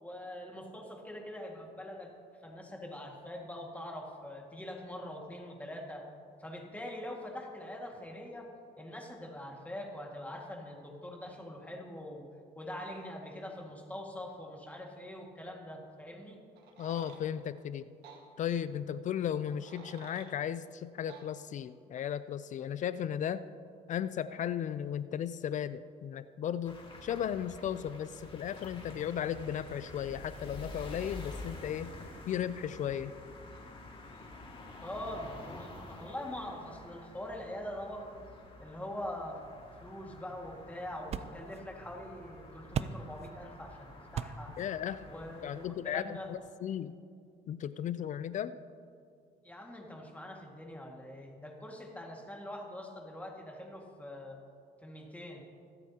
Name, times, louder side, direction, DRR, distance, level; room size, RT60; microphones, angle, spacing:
voice 1, 0.0-2.1 2.4-6.0 6.4-8.5 8.8-12.2 12.6-16.4 34.8-38.2 38.6-39.4 39.8-44.5 45.0-46.3 49.4-54.4 54.8-55.4, left 1 dB, 10° left, 0 dB, 1.9 m, -43 dB
sound 1, 16.6-17.2 18.0-18.2 19.4-20.3 21.1-21.3, right 5 dB, 85° right, 1.6 m, -52 dB
voice 2, 16.8-17.9 18.4-23.4 23.9-31.9 32.3-33.1 44.6-45.1 45.4-47.0 47.5-48.6, left 9 dB, 45° left, 14 dB, 0.4 m, -35 dB
sound 2, 26.6-45.7, left 2 dB, 30° left, 2.1 m, -49 dB
sound 3, 39.4-46.5, right 7 dB, 40° right, 0.4 m, -44 dB
25.0 x 8.3 x 2.9 m, 2.4 s
cardioid pair, 110°, 17 cm